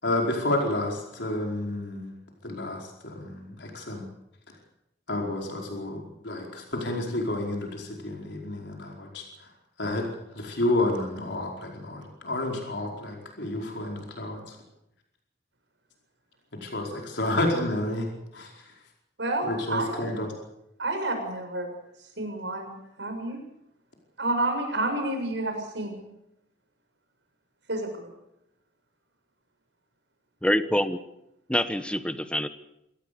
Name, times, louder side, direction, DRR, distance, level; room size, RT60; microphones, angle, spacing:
voice 1, 0.0-2.1 2.4-4.0 5.1-9.5 9.8-10.0 10.3-14.6 16.6-18.1 18.3-18.7 19.4-20.3, left 1 dB, 70° left, 0 dB, 4.9 m, -30 dB
voice 2, 19.2-20.0 20.8-21.7 22.2-23.4 24.2-26.0 27.7-28.1, right 2 dB, 75° right, 5 dB, 6.8 m, -29 dB
voice 3, 30.4-31.0 31.5-32.5, left 1 dB, 5° left, 10 dB, 1.2 m, -25 dB
26.0 x 18.0 x 6.9 m, 0.84 s
head